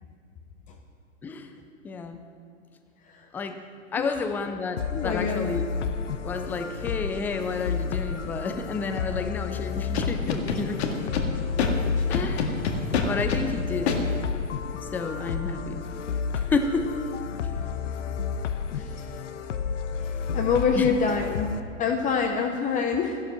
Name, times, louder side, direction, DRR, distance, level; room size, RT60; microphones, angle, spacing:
voice 1, 1.2-1.5 1.8-2.2 3.3-3.6 3.9-5.7 6.2-11.1 11.7-11.8 12.1-12.7 13.0-14.0 14.8-15.8 16.3-16.9 18.7-18.9 20.7-20.9, left 4 dB, 5° left, 7 dB, 0.4 m, -31 dB
sound 1, 4.8-21.6, left 6 dB, 80° left, 1.0 m, -31 dB
voice 2, 4.9-5.5 20.3-21.5 21.8-23.2, left 5 dB, 20° left, 4 dB, 0.8 m, -25 dB
Scratching (performance technique), 9.9-11.2 11.6-11.7 12.1-13.4 13.9-14.0, left 6 dB, 60° left, 1.8 m, -26 dB
13.5 x 11.5 x 6.3 m, 2.4 s
hypercardioid pair, 125°, 37 cm